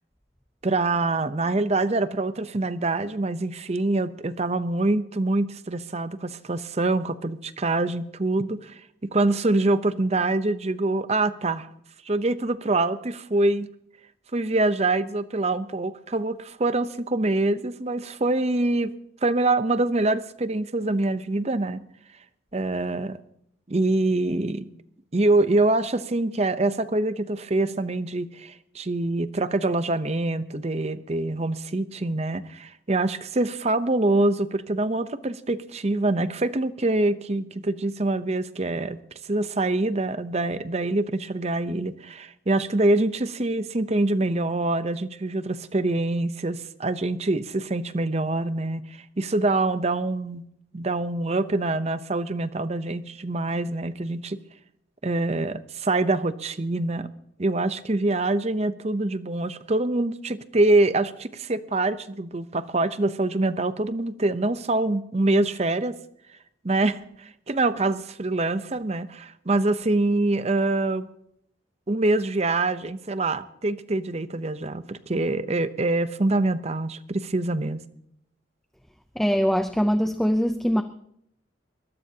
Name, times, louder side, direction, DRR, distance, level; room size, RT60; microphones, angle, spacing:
voice 1, 0.6-11.7 12.0-13.7 14.3-18.9 19.2-21.8 22.5-23.2 23.7-24.7 25.1-39.0 39.3-50.5 50.7-54.4 55.0-57.1 57.4-66.0 66.6-71.1 71.9-77.8, right 2 dB, 35° right, 13 dB, 0.7 m, -25 dB
voice 2, 79.2-80.8, equal, ahead, 8 dB, 0.5 m, -22 dB
22.5 x 20.5 x 2.8 m, 0.74 s
head